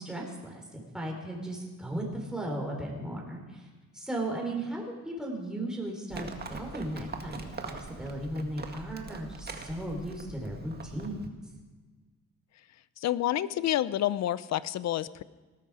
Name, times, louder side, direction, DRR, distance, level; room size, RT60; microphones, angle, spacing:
voice 1, 0.0-3.7 3.9-11.3, right 1 dB, ahead, -1 dB, 4.1 m, -36 dB
Livestock farm animals working animals, 6.1-11.3, right 4 dB, 35° right, 1.8 m, -42 dB
voice 2, 13.0-15.2, left 12 dB, 60° left, 17 dB, 0.6 m, -29 dB
19.0 x 12.5 x 5.0 m, 1.3 s
cardioid pair, 90°, 30 cm